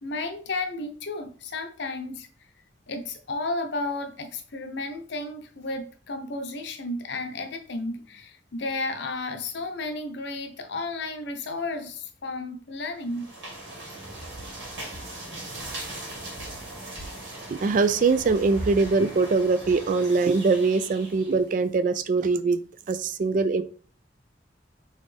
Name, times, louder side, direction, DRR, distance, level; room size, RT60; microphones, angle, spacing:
voice 1, 0.0-2.3 2.9-13.3, left 2 dB, 65° left, 0.7 m, -33 dB
sound 1, 13.0-21.4, right 1 dB, 85° right, 2.1 m, -39 dB
voice 2, 17.5-22.6 22.9-23.6, right 4 dB, 45° right, 0.3 m, -22 dB
4.1 x 3.7 x 3.3 m
head